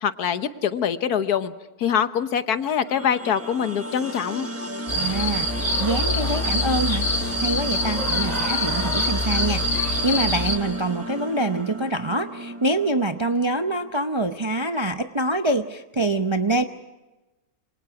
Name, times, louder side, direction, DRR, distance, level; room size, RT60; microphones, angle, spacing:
voice 1, 0.0-1.5 1.8-4.5, left 8 dB, 75° left, 11 dB, 1.6 m, -24 dB
sound 1, 2.8-13.9, equal, 10° right, 1.0 m, -34 dB
sound 2, 4.9-10.6, left 1 dB, 25° left, 2.9 m, -25 dB
voice 2, 4.9-7.1 7.4-16.6, right 2 dB, 30° right, 7 dB, 0.5 m, -25 dB
27.0 x 25.0 x 4.8 m, 1.1 s
omnidirectional pair, 1.7 m